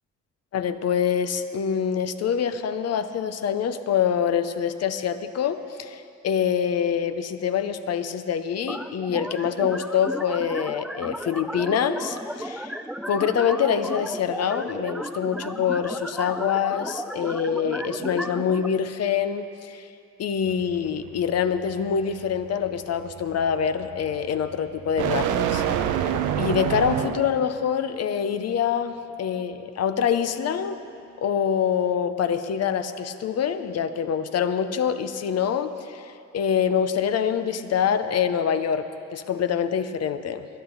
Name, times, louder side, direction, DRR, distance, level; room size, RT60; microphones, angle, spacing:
voice 1, 0.5-12.7 13.1-19.9 20.2-25.6 26.4-30.8 31.2-40.5, left 8 dB, 55° left, 10 dB, 0.7 m, -25 dB
sound 1, 8.7-18.7, equal, ahead, 0.4 m, -34 dB
sound 2, 20.5-27.4, right 9 dB, 90° right, 0.7 m, -28 dB
21.0 x 10.5 x 4.0 m, 2.5 s
cardioid pair, 90°, 30 cm